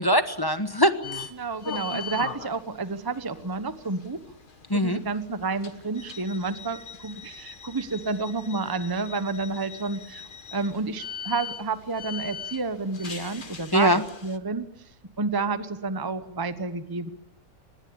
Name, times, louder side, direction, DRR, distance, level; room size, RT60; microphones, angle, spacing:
voice 1, 0.0-1.3 4.7-5.0 13.7-14.0, equal, 15° left, 9 dB, 1.3 m, -22 dB
sound 1, 1.0-14.4, left 6 dB, 35° left, 1.3 m, -41 dB
voice 2, 1.3-4.2 4.7-10.2 10.5-14.7 15.2-17.1, right 3 dB, 15° right, 11 dB, 1.1 m, -30 dB
25.0 x 20.5 x 8.8 m, 0.80 s
omnidirectional pair, 1.6 m